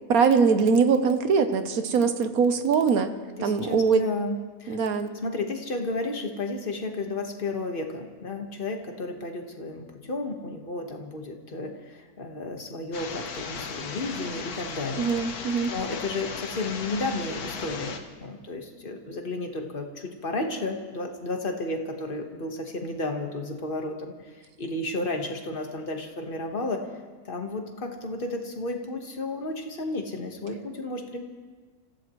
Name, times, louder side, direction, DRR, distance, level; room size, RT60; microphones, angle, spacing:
voice 1, 0.1-3.1 3.4-4.0 4.7-5.1 15.0-15.7, right 5 dB, 75° right, 9 dB, 1.4 m, -22 dB
voice 2, 3.4-4.8 5.2-15.0 15.7-26.9 27.2-31.2, left 2 dB, 40° left, 3 dB, 1.6 m, -32 dB
sound 1, 12.9-18.0, left 5 dB, 90° left, 1.6 m, -36 dB
29.5 x 15.0 x 3.1 m, 1.4 s
omnidirectional pair, 1.5 m